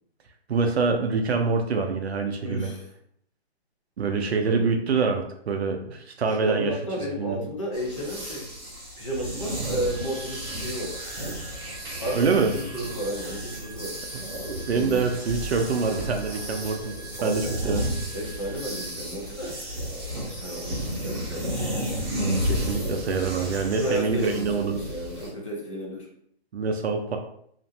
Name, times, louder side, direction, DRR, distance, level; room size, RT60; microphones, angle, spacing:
voice 1, 0.5-2.7 4.0-6.8 7.2-7.4 12.1-12.5 14.2-14.3 14.7-17.8 22.4-24.8 26.5-27.2, right 4 dB, 75° right, 4 dB, 0.5 m, -25 dB
voice 2, 2.4-2.9 4.4-4.8 6.3-8.5 9.0-11.0 12.0-14.0 14.7-15.1 17.2-17.6 18.1-19.6 20.2-21.7 23.8-26.1, right 1 dB, 30° left, -2 dB, 0.5 m, -32 dB
sound 1, 7.7-25.3, equal, 25° right, 0.6 m, -33 dB
sound 2, 9.9-18.9, right 6 dB, 50° left, 0.8 m, -48 dB
2.5 x 2.0 x 2.6 m, 0.68 s
hypercardioid pair, 165°, 32 cm